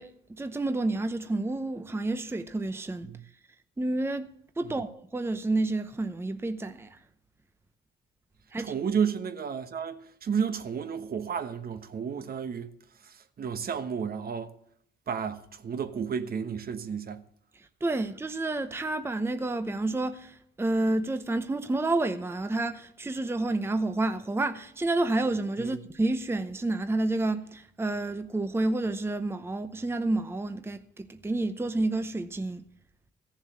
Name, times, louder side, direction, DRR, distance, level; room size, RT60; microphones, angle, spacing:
voice 1, 0.0-3.1 3.8-7.0 8.5-8.7 17.6-32.6, right 2 dB, 10° right, 0.8 m, -30 dB
voice 2, 8.6-12.7 13.0-14.5 15.1-17.2 25.6-25.8, right 7 dB, 50° right, 1.1 m, -32 dB
14.5 x 7.3 x 7.4 m
cardioid pair, 90°, 20 cm